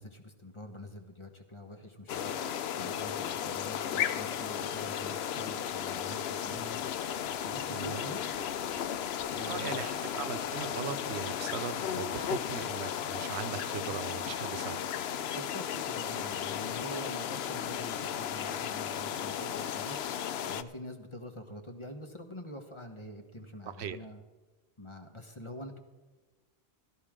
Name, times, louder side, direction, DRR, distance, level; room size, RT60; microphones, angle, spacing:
voice 1, 0.0-6.9 7.4-8.2 9.2-9.8 15.3-24.2 24.8-25.8, left 1 dB, 30° left, 4 dB, 1.2 m, -45 dB
sound 1, 2.1-20.6, left 9 dB, 75° left, 0.8 m, -35 dB
sound 2, 6.4-12.9, right 1 dB, 40° right, 1.9 m, -58 dB
voice 2, 7.7-8.0 9.5-14.8 23.7-24.0, right 7 dB, 85° right, 11 dB, 1.0 m, -39 dB
16.5 x 12.5 x 3.7 m, 1.3 s
omnidirectional pair, 1.1 m